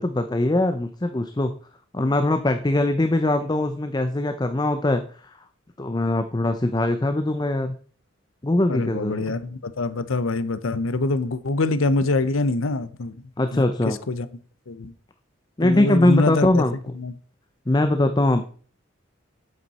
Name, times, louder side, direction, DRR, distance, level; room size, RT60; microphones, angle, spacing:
voice 1, 0.0-1.5 1.9-5.5 5.8-7.7 8.4-9.4 13.4-14.0 15.6-16.7 17.7-18.5, left 1 dB, 20° left, 0.6 m, -22 dB
voice 2, 8.7-14.3 14.7-14.9 15.6-16.6 17.0-17.1, left 2 dB, 90° left, 0.7 m, -25 dB
8.3 x 7.7 x 4.1 m
head